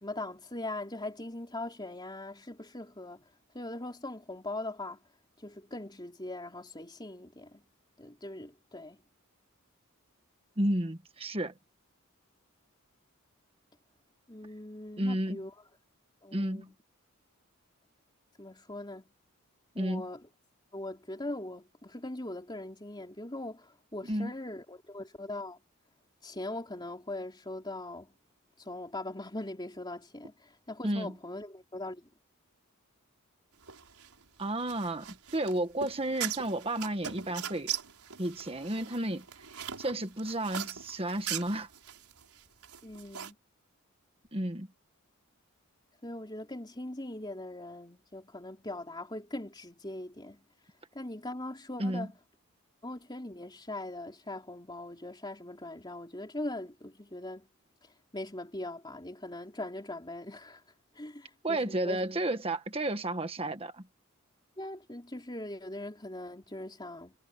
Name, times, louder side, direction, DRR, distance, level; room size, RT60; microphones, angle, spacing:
voice 1, 0.0-3.2 3.5-5.0 5.4-7.6 8.0-9.0 14.3-15.5 16.2-16.7 18.4-19.1 19.8-20.3 20.7-25.6 26.2-28.1 28.6-32.1 42.8-43.4 46.0-50.4 50.9-52.1 52.8-57.5 58.1-60.6 61.0-62.1 64.6-67.1, left 1 dB, 20° left, 3.5 m, -41 dB
voice 2, 10.6-11.5 15.0-15.4 16.3-16.7 19.7-20.1 24.0-24.3 30.8-31.1 34.4-37.7 38.2-39.3 39.8-41.7 44.3-44.7 51.8-52.1 61.4-63.8, right 1 dB, 25° right, 1.5 m, -32 dB
sound 1, 33.6-43.3, right 9 dB, 85° right, 4.6 m, -40 dB
head